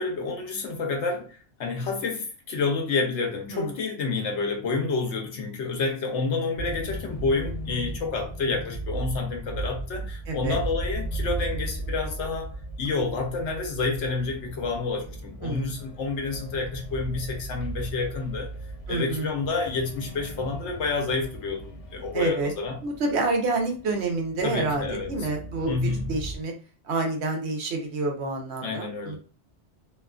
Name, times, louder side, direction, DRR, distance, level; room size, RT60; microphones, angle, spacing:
voice 1, 0.0-12.5 12.8-18.5 18.9-22.8 24.4-25.1 25.7-26.2 28.6-29.2, left 4 dB, 85° left, 1.1 m, -29 dB
sound 1, 6.6-26.4, right 1 dB, 50° left, 0.4 m, -37 dB
voice 2, 10.3-10.6 15.4-15.8 18.9-19.3 22.1-22.5 22.8-26.5 26.8-29.2, right 3 dB, 70° right, 0.9 m, -28 dB
2.7 x 2.4 x 2.3 m
omnidirectional pair, 1.2 m